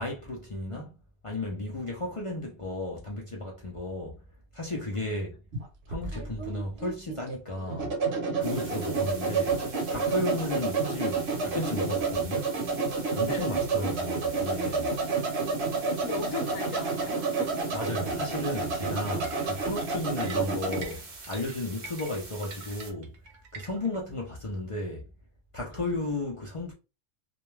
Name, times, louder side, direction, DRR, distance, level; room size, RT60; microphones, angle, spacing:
voice 1, 0.0-4.2 4.5-5.4 5.9-8.0 8.4-9.6 9.9-12.5 13.2-14.9 17.7-23.2 23.5-25.1 25.5-26.7, left 2 dB, 55° left, 0.3 m, -34 dB
sound 1, 5.5-20.9, right 4 dB, 60° right, 0.9 m, -30 dB
sound 2, 8.4-22.9, right 3 dB, 40° right, 0.6 m, -46 dB
voice 2, 13.3-13.6 15.2-15.3 15.9-17.6, left 7 dB, 85° left, 1.0 m, -38 dB
sound 3, 19.2-24.0, right 4 dB, 80° right, 1.1 m, -45 dB
2.4 x 2.2 x 3.1 m
omnidirectional pair, 1.3 m